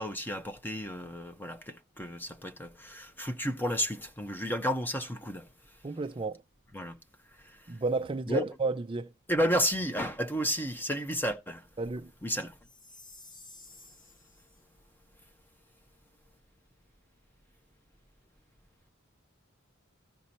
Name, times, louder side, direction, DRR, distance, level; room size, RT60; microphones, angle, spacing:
voice 1, 0.0-5.5 6.7-6.9 7.4-7.6 8.3-8.5 9.3-11.6 12.2-12.5, equal, 10° left, 0.9 m, -32 dB
voice 2, 5.8-6.4 7.7-9.1 11.8-12.1, right 3 dB, 25° right, 0.4 m, -32 dB
Chime, 12.6-14.6, left 2 dB, 40° left, 1.9 m, -53 dB
14.0 x 5.2 x 4.2 m
head